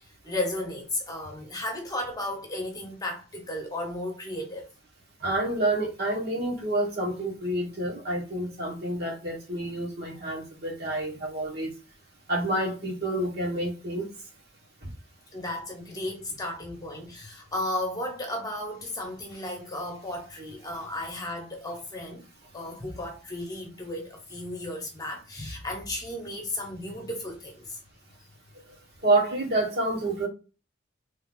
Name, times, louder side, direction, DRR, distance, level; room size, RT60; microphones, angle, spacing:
voice 1, 0.0-4.7 15.3-22.2 22.5-27.8, left 1 dB, 20° left, 1.1 m, -34 dB
voice 2, 5.2-11.7 12.3-14.1 29.0-30.3, right 2 dB, 55° right, 1.5 m, -28 dB
3.4 x 2.8 x 3.7 m
head